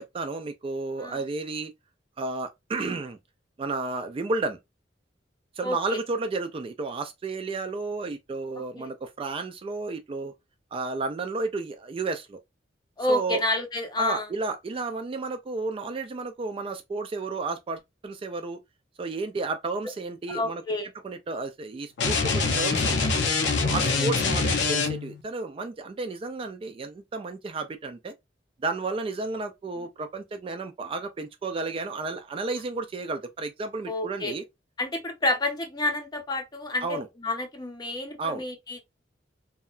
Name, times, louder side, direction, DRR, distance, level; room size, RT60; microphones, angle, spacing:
voice 1, 0.0-1.7 2.2-3.2 3.6-4.6 5.6-10.3 10.7-12.4 13.1-13.4 14.0-18.6 19.0-20.6 21.0-23.1 23.6-28.1 28.6-34.4 36.8-37.1 38.2-38.4, right 3 dB, 30° right, 0.3 m, -32 dB
voice 2, 5.6-6.0 8.7-8.9 13.0-14.3 20.3-20.9 23.7-24.1 33.9-34.4 34.8-38.8, left 1 dB, 25° left, 0.6 m, -29 dB
sound 1, 22.0-25.2, left 4 dB, 75° left, 0.6 m, -24 dB
2.8 x 2.1 x 2.3 m
head